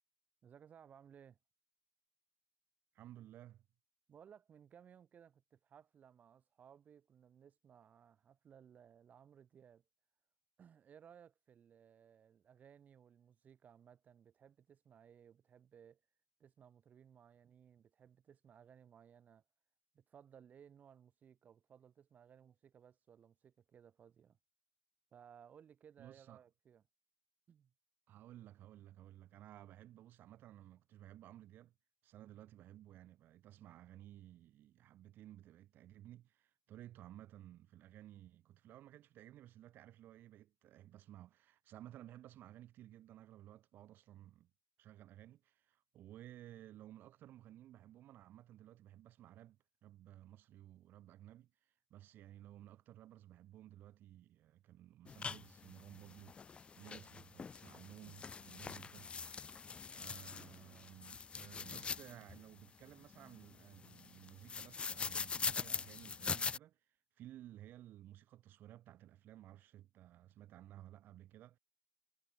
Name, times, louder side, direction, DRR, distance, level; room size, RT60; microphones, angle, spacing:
voice 1, 0.4-1.4 4.1-9.8 10.6-16.0 16.4-19.4 19.9-24.4 25.1-26.8 27.5-27.7, right 8 dB, 50° right, 2.8 m, -61 dB
voice 2, 2.9-3.7 26.0-26.4 28.1-31.7 32.0-44.5 44.8-51.5 51.9-56.4 56.7-59.1 59.9-66.8 67.2-71.6, right 13 dB, 80° right, 1.2 m, -56 dB
sound 1, 55.1-66.6, left 5 dB, 30° left, 0.5 m, -43 dB
cardioid pair, 125°, 3 cm